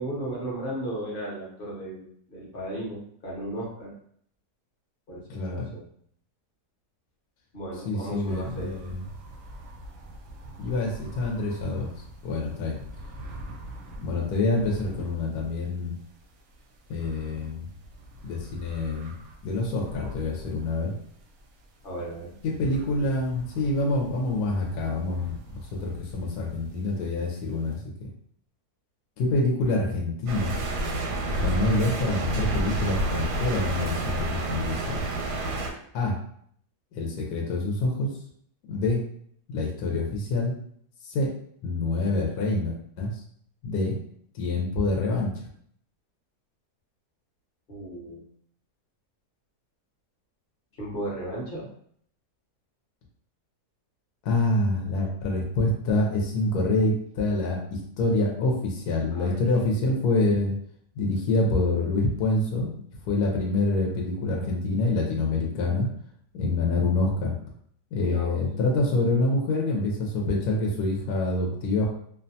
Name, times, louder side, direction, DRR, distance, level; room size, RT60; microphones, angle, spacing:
voice 1, 0.0-3.9 5.1-5.8 7.5-8.8 21.8-22.3 47.7-48.2 50.7-51.7 59.1-59.4 59.7-59.8 68.0-68.4, right 1 dB, 45° left, -4 dB, 0.8 m, -35 dB
voice 2, 5.3-5.7 7.8-9.0 10.6-11.9 12.2-12.8 14.0-15.9 16.9-17.7 18.2-19.1 19.4-20.9 22.4-25.4 25.7-28.1 29.2-30.5 31.3-35.1 35.9-36.2 36.9-38.1 38.7-39.0 39.5-40.5 41.0-41.3 41.6-43.2 43.6-44.0 44.3-45.3 54.2-60.5 61.0-62.7 63.0-65.9 66.3-67.4 67.9-71.9, left 2 dB, 75° left, -1 dB, 1.0 m, -26 dB
sound 1, 8.1-27.8, right 1 dB, 70° right, 0.8 m, -45 dB
sound 2, 30.3-35.7, right 1 dB, 85° right, 1.2 m, -28 dB
2.7 x 2.2 x 2.6 m, 0.64 s
omnidirectional pair, 1.7 m